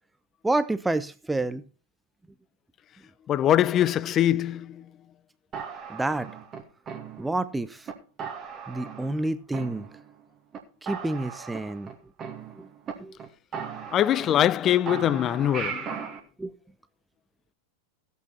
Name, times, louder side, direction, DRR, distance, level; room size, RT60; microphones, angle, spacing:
voice 1, 0.4-1.6 5.9-6.3 7.2-7.9 8.7-9.8 10.8-11.9 12.3-12.7 13.0-13.2 16.4-16.6, right 2 dB, 5° right, 0.7 m, -29 dB
voice 2, 3.3-4.9 13.9-16.0, left 11 dB, 30° left, 0.5 m, -23 dB
sound 1, 5.5-7.5 7.9-8.0 8.2-9.2 9.5-10.2 10.5-10.6 10.9-12.9 13.2-13.3 13.5-14.6 14.9-16.2, right 6 dB, 30° right, 2.2 m, -37 dB
15.5 x 8.4 x 4.2 m
figure-of-eight pair, 90°, 0 cm